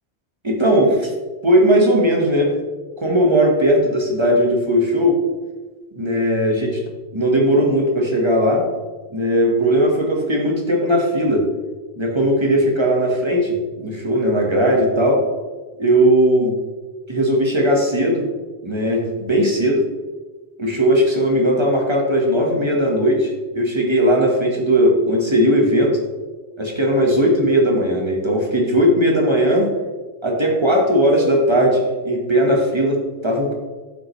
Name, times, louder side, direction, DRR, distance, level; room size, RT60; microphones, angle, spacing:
voice 1, 0.4-1.1 1.4-2.5 3.0-5.2 5.9-6.8 7.1-8.7 9.1-11.4 12.0-15.2 15.8-16.6 17.1-18.2 18.6-19.8 20.6-25.9 26.6-29.7 30.2-33.5, equal, 25° right, 0 dB, 1.4 m, -18 dB
12.0 x 5.9 x 3.2 m, 1.3 s
omnidirectional pair, 1.2 m